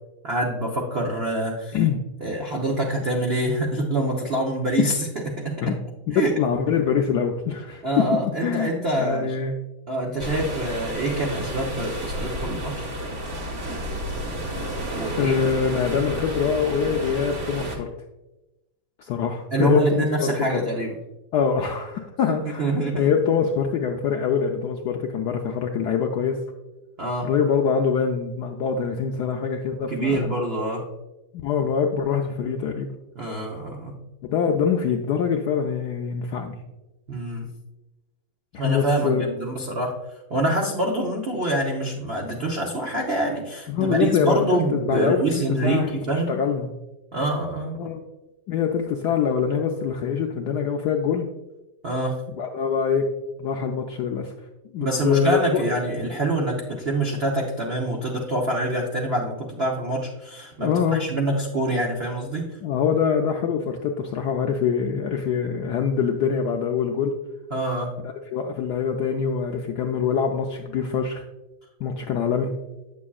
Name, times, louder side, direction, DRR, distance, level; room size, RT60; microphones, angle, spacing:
voice 1, 0.2-1.8 2.2-5.1 5.3-5.7 6.1-6.3 7.8-9.4 9.9-12.9 14.9-15.4 19.5-20.9 22.3-23.1 27.0-27.3 29.9-30.9 33.2-33.9 37.1-37.5 38.6-40.0 40.3-46.4 47.1-47.9 51.8-52.2 54.8-62.4 67.5-67.9, right 1 dB, 80° right, -1 dB, 0.5 m, -25 dB
voice 2, 6.4-7.8 8.4-9.5 15.2-17.9 19.0-20.7 21.3-26.4 27.2-30.3 31.4-33.0 34.2-36.6 38.5-39.3 43.7-46.7 47.8-48.0 48.5-51.3 52.4-53.1 53.4-54.3 54.7-55.6 60.6-61.0 62.6-67.1 68.0-71.2 71.8-72.5, left 6 dB, 80° left, 3 dB, 0.9 m, -24 dB
sound 1, 10.2-17.8, right 1 dB, 40° right, 1.3 m, -31 dB
8.4 x 6.9 x 2.3 m, 1.0 s
omnidirectional pair, 2.3 m